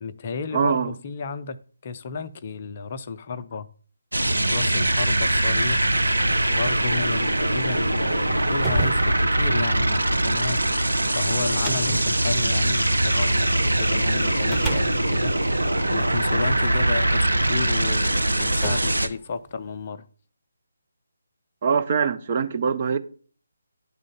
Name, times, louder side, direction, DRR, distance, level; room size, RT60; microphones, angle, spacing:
voice 1, 0.0-3.7 4.5-5.9 6.5-20.0, left 5 dB, 35° left, 0.5 m, -33 dB
voice 2, 0.5-0.9 21.6-23.0, right 6 dB, 35° right, 0.7 m, -23 dB
sound 1, 4.1-19.1, right 1 dB, 80° right, 0.9 m, -22 dB
sound 2, 8.2-13.6 14.2-16.6 17.5-17.6 18.2-19.9, right 2 dB, 5° right, 1.0 m, -35 dB
10.5 x 3.7 x 7.2 m
figure-of-eight pair, 150°, 0 cm